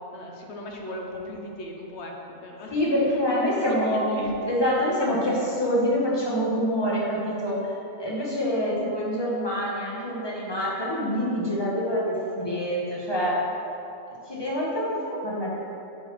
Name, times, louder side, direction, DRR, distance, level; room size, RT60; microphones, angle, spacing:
voice 1, 0.1-2.1 2.4-2.7 3.1-4.3, left 2 dB, 60° left, 0 dB, 1.2 m, -37 dB
voice 2, 2.7-13.4 14.2-15.5, equal, 20° left, -6 dB, 1.5 m, -26 dB
8.3 x 4.3 x 5.9 m, 2.8 s
omnidirectional pair, 1.3 m